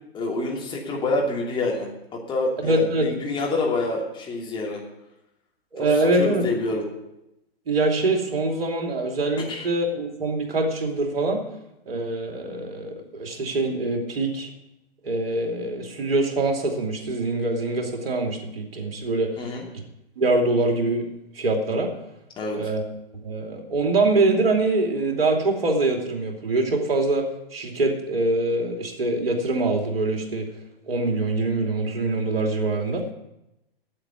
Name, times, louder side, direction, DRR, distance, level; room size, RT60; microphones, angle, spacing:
voice 1, 0.1-1.9 2.1-4.8 5.8-5.9 6.1-6.8 9.5-9.7 19.4-19.6 22.4-22.6, left 2 dB, 15° left, -2 dB, 2.8 m, -27 dB
voice 2, 2.6-3.1 5.7-6.5 7.7-11.4 11.9-14.5 15.0-19.5 20.2-21.1 21.3-21.9 22.5-22.8 23.2-30.5 30.8-33.1, right 2 dB, 70° right, 2 dB, 2.9 m, -24 dB
8.8 x 8.7 x 9.4 m, 0.89 s
figure-of-eight pair, 120°, 30 cm